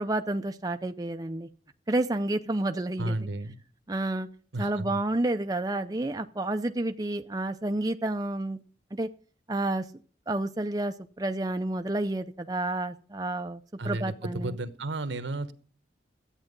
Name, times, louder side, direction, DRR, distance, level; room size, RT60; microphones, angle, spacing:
voice 1, 0.0-1.5 1.9-3.2 3.9-4.3 4.6-8.6 8.9-9.1 9.5-9.9 10.3-14.6, right 2 dB, 20° right, 0.5 m, -30 dB
voice 2, 3.0-3.6 4.5-5.0 13.8-15.5, right 2 dB, 85° right, 1.1 m, -33 dB
13.0 x 9.0 x 5.3 m
head